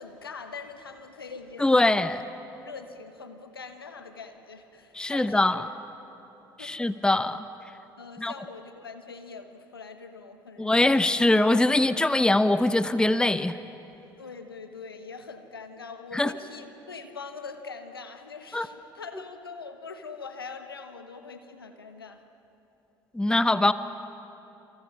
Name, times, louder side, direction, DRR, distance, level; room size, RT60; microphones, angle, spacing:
voice 1, 0.0-2.1 2.6-5.7 6.6-6.8 8.0-10.9 14.2-22.2, left 4 dB, 85° left, 8 dB, 1.3 m, -43 dB
voice 2, 1.6-2.2 4.9-5.7 6.6-7.4 8.2-8.3 10.6-13.6 16.1-16.3 18.5-18.7 23.1-23.7, left 2 dB, 5° left, 13 dB, 0.9 m, -22 dB
29.0 x 28.0 x 6.2 m, 3.0 s
figure-of-eight pair, 55°, 12 cm